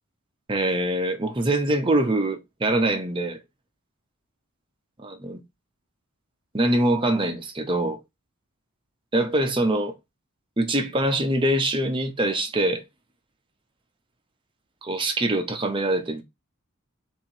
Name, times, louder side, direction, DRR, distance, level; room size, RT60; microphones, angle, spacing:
voice 1, 0.5-3.4 5.0-5.4 6.5-8.0 9.1-9.9 10.6-12.8 14.8-16.2, right 1 dB, 20° right, 0.6 m, -24 dB
3.8 x 2.9 x 4.3 m
head